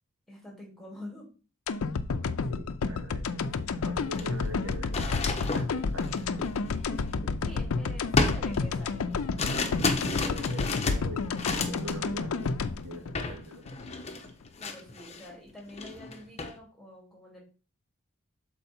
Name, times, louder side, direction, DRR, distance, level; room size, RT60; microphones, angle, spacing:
voice 1, 0.3-1.3 7.4-9.2 14.6-17.4, left 1 dB, ahead, -2 dB, 2.4 m, -46 dB
sound 1, 1.7-13.9 14.3-14.4, left 4 dB, 75° left, 0.5 m, -31 dB
voice 2, 2.2-3.4 3.8-6.1 9.6-9.8 10.2-12.6 12.8-13.6, right 1 dB, 70° right, 1 dB, 2.0 m, -43 dB
sound 2, 3.5-3.6 4.0-7.6 8.2-12.0 12.4-12.7 13.1-13.4 13.7-15.3 15.7-16.5, left 3 dB, 30° left, 0.8 m, -32 dB
6.6 x 4.6 x 4.3 m, 0.36 s
head